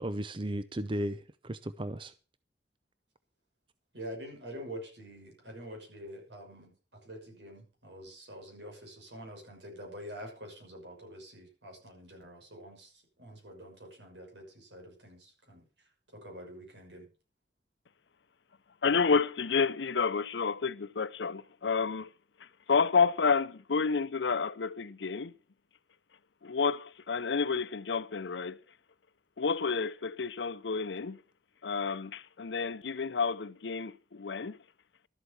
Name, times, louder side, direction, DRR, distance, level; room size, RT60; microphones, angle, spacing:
voice 1, 0.0-2.1, right 1 dB, 30° right, 0.6 m, -35 dB
voice 2, 3.9-12.9 13.2-15.6 16.1-17.0, equal, 85° right, 6.2 m, -46 dB
voice 3, 18.8-22.1 22.7-25.3 26.4-28.6 29.4-31.2 31.6-34.6, left 5 dB, 90° left, 0.7 m, -30 dB
12.5 x 8.0 x 7.1 m
head